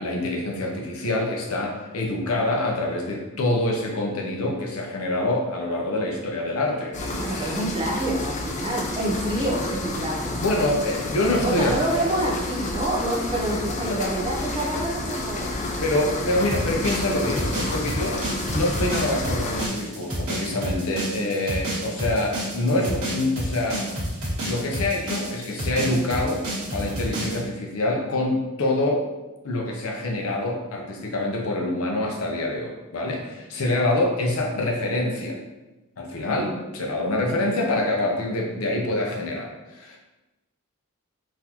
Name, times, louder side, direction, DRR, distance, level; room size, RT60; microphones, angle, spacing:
voice 1, 0.0-7.6 10.0-12.3 13.9-14.1 15.8-23.9 24.4-26.5 26.7-29.0 29.4-35.4 36.0-40.0, left 1 dB, 75° left, 1 dB, 0.6 m, -26 dB
sound 1, 6.9-19.7, left 2 dB, 30° left, 0.3 m, -30 dB
voice 2, 7.2-10.4 11.4-15.6 36.3-36.6, right 1 dB, 20° right, -3 dB, 0.6 m, -27 dB
sound 2, 16.5-27.4, right 1 dB, 65° right, 1.3 m, -29 dB
3.9 x 2.6 x 2.9 m, 1.1 s
head